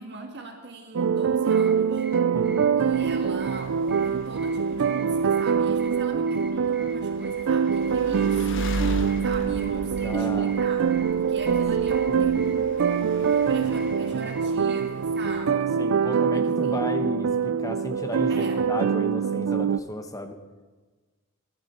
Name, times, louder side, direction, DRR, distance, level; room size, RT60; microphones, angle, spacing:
voice 1, 0.0-2.1 2.7-8.7 9.2-12.6 13.1-13.2 13.5-15.8 16.3-16.9 18.3-18.6, right 3 dB, 50° right, 3 dB, 1.6 m, -39 dB
sound 1, 0.9-19.8, right 6 dB, 70° right, 0.4 m, -24 dB
sound 2, 1.4-15.5, right 1 dB, 5° right, 1.9 m, -48 dB
voice 2, 2.3-2.7 10.0-10.5 12.1-12.3 15.8-20.4, left 1 dB, 15° left, 6 dB, 1.0 m, -33 dB
sound 3, 2.9-15.4, left 1 dB, 55° left, 1.3 m, -39 dB
22.0 x 11.5 x 4.4 m, 1.3 s
head